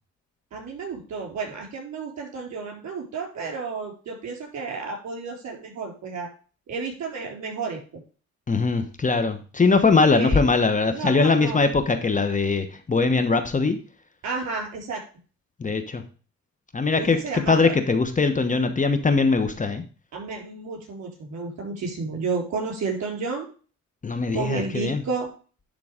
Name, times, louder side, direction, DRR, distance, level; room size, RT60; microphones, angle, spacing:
voice 1, 0.5-6.3 6.7-8.0 9.9-10.4 10.9-11.6 14.2-15.0 16.9-17.7 20.1-23.5 24.3-25.3, right 4 dB, 60° right, 1 dB, 4.2 m, -31 dB
voice 2, 8.5-13.8 15.6-16.0 16.7-19.8 24.0-25.0, left 4 dB, 25° left, 8 dB, 1.0 m, -21 dB
11.0 x 3.9 x 4.9 m, 0.37 s
cardioid pair, 90°, 30 cm